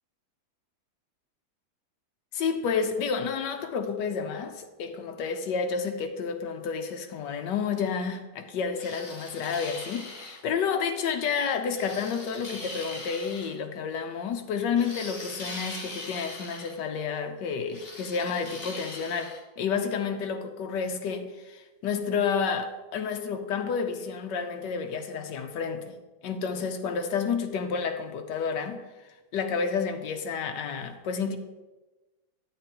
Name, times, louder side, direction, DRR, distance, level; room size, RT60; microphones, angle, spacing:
voice 1, 2.3-26.0 26.2-28.8 29.3-31.4, left 6 dB, 70° left, 1.2 m, -30 dB
sound 1, 8.8-10.4 11.8-13.5 14.8-16.8 17.7-19.4, left 2 dB, 35° left, 1.3 m, -41 dB
10.0 x 8.7 x 3.0 m
omnidirectional pair, 2.2 m